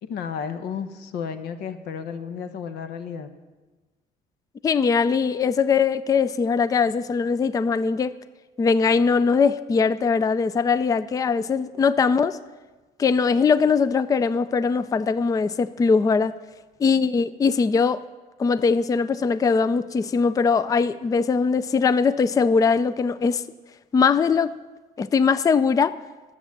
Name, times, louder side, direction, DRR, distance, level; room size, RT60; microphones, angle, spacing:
voice 1, 0.0-3.3, left 7 dB, 75° left, 10 dB, 1.0 m, -32 dB
voice 2, 4.6-8.1 8.6-12.4 13.0-16.3 16.8-18.0 18.4-23.4 23.9-24.5 25.0-25.9, left 5 dB, 20° left, 15 dB, 0.4 m, -21 dB
11.5 x 8.0 x 7.3 m, 1.3 s
cardioid pair, 110°, 17 cm